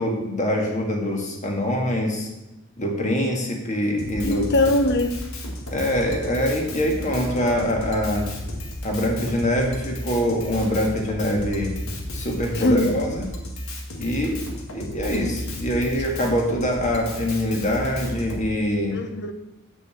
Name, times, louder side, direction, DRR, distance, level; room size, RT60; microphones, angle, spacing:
voice 1, 0.0-2.3 2.8-4.5 5.7-8.3 8.8-11.8 12.1-13.3 14.0-14.4 14.7-19.0, equal, 35° left, 1 dB, 1.8 m, -24 dB
Drum kit, 4.0-18.4, left 1 dB, 85° left, 1.8 m, -33 dB
voice 2, 4.2-5.2 12.6-12.9 18.9-19.3, left 2 dB, 55° left, 8 dB, 0.9 m, -21 dB
6.9 x 6.6 x 6.9 m, 0.99 s
head